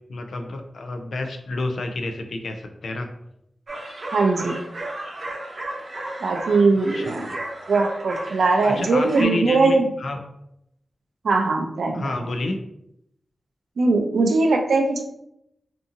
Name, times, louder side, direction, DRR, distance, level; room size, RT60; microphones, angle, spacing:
voice 1, 0.1-3.1 6.9-7.3 8.6-10.2 11.9-12.6, left 2 dB, 70° left, 5 dB, 0.4 m, -29 dB
sound 1, 3.7-9.2, right 1 dB, 45° right, 0.7 m, -34 dB
voice 2, 4.1-4.6 6.2-7.3 7.7-9.9 11.2-12.0 13.8-15.0, right 3 dB, 85° right, 3 dB, 0.4 m, -20 dB
2.6 x 2.6 x 2.5 m, 0.79 s
wide cardioid pair, 120°, 0 cm